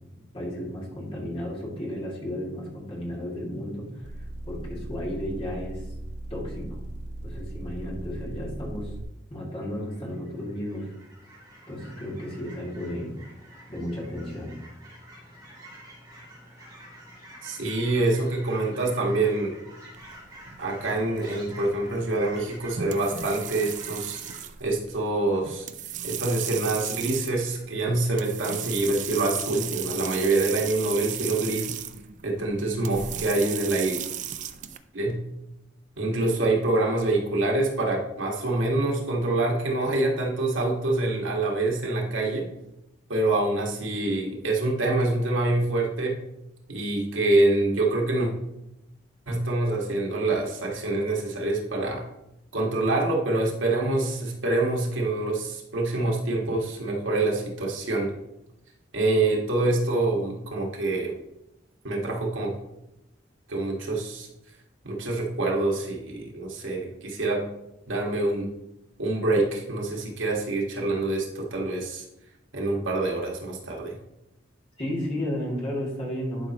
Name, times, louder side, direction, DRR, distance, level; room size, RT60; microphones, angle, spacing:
voice 1, 0.3-5.9 6.3-6.9 7.2-9.0 9.3-10.9 11.7-13.2 13.7-14.5 74.8-76.5, equal, 30° left, -5 dB, 2.3 m, -33 dB
sound 1, 4.0-9.0, right 1 dB, 60° right, 1.1 m, -38 dB
Fowl / Chirp tweet, 9.7-24.4, right 1 dB, 20° right, 2.9 m, -48 dB
voice 2, 17.4-19.5 20.6-24.2 24.6-25.7 26.0-31.8 32.2-34.0 34.9-35.2 36.0-42.5 43.1-46.2 46.7-48.3 49.3-52.0 52.5-58.1 58.9-61.2 61.8-62.6 63.5-64.3 64.8-67.5 67.9-68.5 69.0-72.0 72.5-74.0, right 2 dB, 85° right, -1 dB, 1.7 m, -26 dB
sound 2, 19.9-34.8, right 9 dB, 40° right, 0.4 m, -36 dB
11.0 x 5.1 x 3.0 m, 0.87 s
head